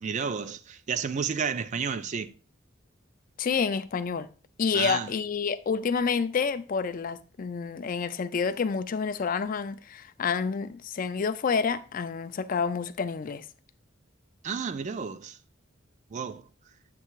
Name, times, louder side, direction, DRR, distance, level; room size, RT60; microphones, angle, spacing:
voice 1, 0.0-2.3 4.7-5.1 14.4-15.4 16.1-16.4, right 6 dB, 35° right, 0.3 m, -31 dB
voice 2, 3.4-4.3 4.6-13.5, left 5 dB, 45° left, 0.4 m, -28 dB
7.6 x 3.3 x 4.6 m
head